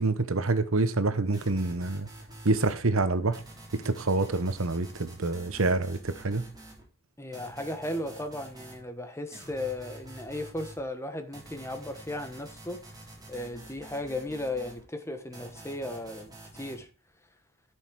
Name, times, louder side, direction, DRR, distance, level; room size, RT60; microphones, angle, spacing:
voice 1, 0.0-2.1 2.4-3.4 3.8-6.5, right 3 dB, 65° right, 1.1 m, -27 dB
sound 1, 1.3-2.8 3.3-6.8 7.3-8.8 9.3-10.8 11.3-14.8 15.3-16.8, right 1 dB, 20° right, 4.5 m, -48 dB
voice 2, 7.2-12.9 13.3-16.9, left 1 dB, 15° left, 1.3 m, -36 dB
12.5 x 6.5 x 4.8 m
head